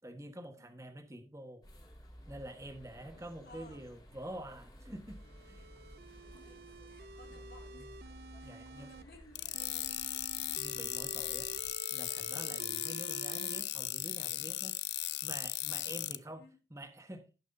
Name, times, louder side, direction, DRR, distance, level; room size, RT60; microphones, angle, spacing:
voice 1, 0.0-1.6 2.3-5.7 7.3-7.4 7.8-7.9 8.4-8.9 10.6-11.5 11.9-14.8 15.2-17.3, right 1 dB, 15° right, 1.2 m, -47 dB
sound 1, 1.6-11.7, equal, 20° left, 2.3 m, -55 dB
voice 2, 3.4-3.8 6.3-6.6 6.9-7.9 8.4-10.2 15.7-16.0 16.3-16.6, left 1 dB, 60° left, 2.4 m, -59 dB
sound 2, 5.1-9.0 9.5-13.6, right 3 dB, 60° right, 0.4 m, -50 dB
sound 3, 9.3-16.2, left 16 dB, 75° left, 0.5 m, -37 dB
18.0 x 6.0 x 2.6 m
head